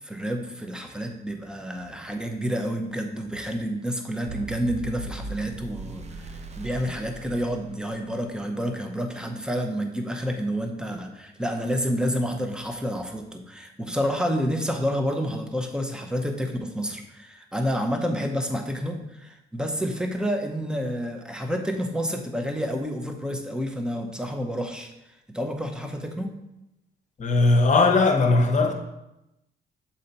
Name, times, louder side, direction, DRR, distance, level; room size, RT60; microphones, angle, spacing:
voice 1, 0.0-24.9 25.3-26.3, equal, 5° right, 0.8 m, -29 dB
sound 1, 4.3-8.4, right 3 dB, 35° right, 0.6 m, -38 dB
voice 2, 27.2-28.7, left 3 dB, 40° left, 1.0 m, -19 dB
6.5 x 4.3 x 4.1 m
cardioid pair, 90°, 20 cm